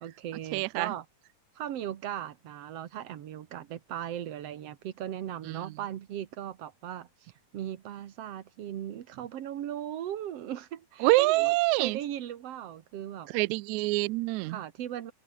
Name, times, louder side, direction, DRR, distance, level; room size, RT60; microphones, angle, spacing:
voice 1, 0.0-1.1 1.6-13.3 14.5-15.1, right 11 dB, 60° right, 2.0 m, -38 dB
voice 2, 0.5-0.9 5.5-5.7 11.0-12.0 13.3-14.6, right 21 dB, 80° right, 1.7 m, -26 dB
omnidirectional pair, 3.7 m